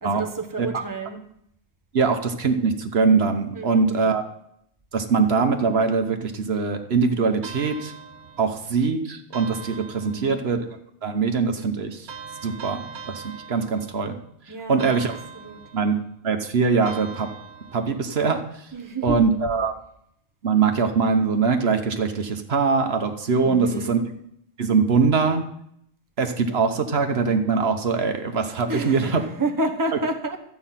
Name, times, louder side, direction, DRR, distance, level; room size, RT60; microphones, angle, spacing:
voice 1, 0.0-1.2 3.5-4.1 10.0-10.4 14.5-15.1 15.3-15.6 18.7-19.2 23.4-24.0 28.7-30.4, right 2 dB, 20° right, 3 dB, 1.1 m, -30 dB
voice 2, 1.9-4.2 4.9-7.9 8.4-10.7 11.0-12.1 12.4-13.2 13.5-14.1 14.7-15.2 15.7-16.0 16.2-17.3 17.7-18.4 19.0-19.7 20.4-24.0 24.6-25.4 26.2-29.2, right 5 dB, 70° right, 6 dB, 1.3 m, -22 dB
sound 1, 7.4-8.7 9.3-10.6 12.1-14.3 14.8-16.1 16.9-18.2, right 6 dB, 90° right, 1.3 m, -41 dB
13.0 x 8.5 x 5.8 m, 0.73 s
omnidirectional pair, 1.1 m